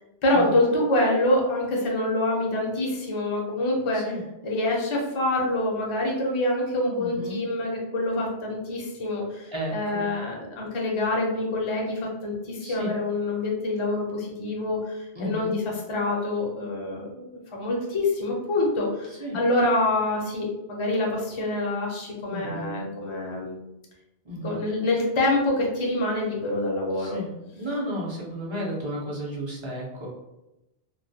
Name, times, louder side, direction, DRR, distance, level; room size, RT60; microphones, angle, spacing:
voice 1, 0.2-4.1 4.4-15.6 15.9-23.6 24.4-27.2, left 2 dB, 40° left, -1 dB, 0.5 m, -26 dB
voice 2, 7.0-7.4 9.5-10.1 12.6-13.0 15.1-15.6 19.2-19.4 22.3-22.7 24.2-24.7 27.0-30.1, equal, 35° right, -5 dB, 0.6 m, -33 dB
2.2 x 2.1 x 2.6 m, 0.91 s
omnidirectional pair, 1.1 m